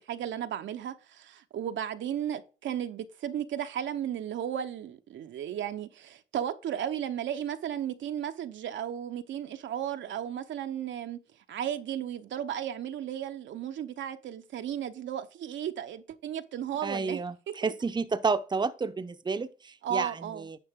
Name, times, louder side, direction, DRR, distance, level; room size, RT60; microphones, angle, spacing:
voice 1, 0.0-11.2 11.5-17.2 17.6-17.7 19.8-20.5, right 10 dB, 70° right, 0.9 m, -34 dB
voice 2, 16.8-17.3 17.6-20.1 20.4-20.6, right 4 dB, 20° right, 0.8 m, -30 dB
9.9 x 5.5 x 3.6 m
cardioid pair, 90°, 20 cm